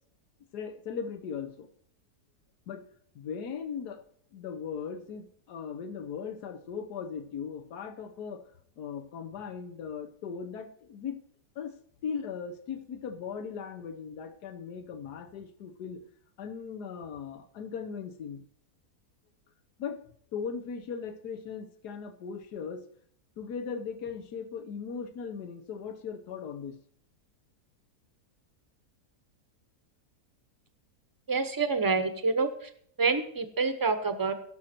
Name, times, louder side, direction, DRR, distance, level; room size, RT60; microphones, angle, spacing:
voice 1, 0.5-1.7 2.7-2.8 3.1-4.0 4.3-8.4 8.8-11.2 11.6-11.7 12.0-16.0 16.4-18.4 19.8-20.0 20.3-22.8 23.4-26.8, left 6 dB, 85° left, 8 dB, 1.5 m, -38 dB
voice 2, 31.3-32.7 33.0-34.3, right 4 dB, 15° right, 9 dB, 0.7 m, -27 dB
17.0 x 6.4 x 4.4 m, 0.62 s
omnidirectional pair, 1.7 m